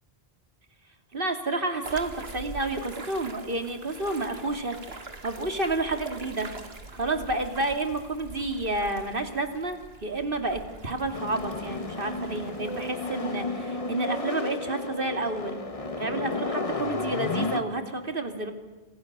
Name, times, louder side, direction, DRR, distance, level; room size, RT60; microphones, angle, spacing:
voice 1, 1.1-6.5 6.9-15.6 16.0-18.5, right 2 dB, 60° right, 6 dB, 2.9 m, -30 dB
sound 1, 1.8-12.9, right 3 dB, 75° right, 2.3 m, -43 dB
sound 2, 11.1-17.6, left 3 dB, 35° left, 1.3 m, -32 dB
28.0 x 26.0 x 6.8 m, 1.2 s
omnidirectional pair, 1.0 m